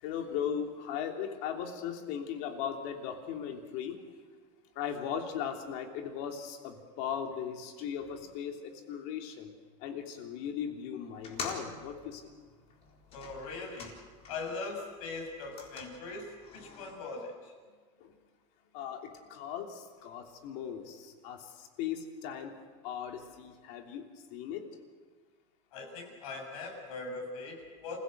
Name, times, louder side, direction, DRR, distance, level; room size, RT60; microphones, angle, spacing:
voice 1, 0.0-4.0 4.7-9.5 9.8-12.2 18.0-18.1 18.7-22.5 22.8-24.6, left 8 dB, 60° left, 3 dB, 3.1 m, -38 dB
sound 1, 11.1-14.6 14.9-16.9, left 4 dB, 35° left, 4.0 m, -46 dB
voice 2, 13.1-13.9 14.3-17.5 23.2-23.3 25.7-28.0, left 3 dB, 85° left, 1 dB, 6.8 m, -41 dB
26.5 x 16.5 x 7.8 m, 1.5 s
supercardioid pair, 145°, 17 cm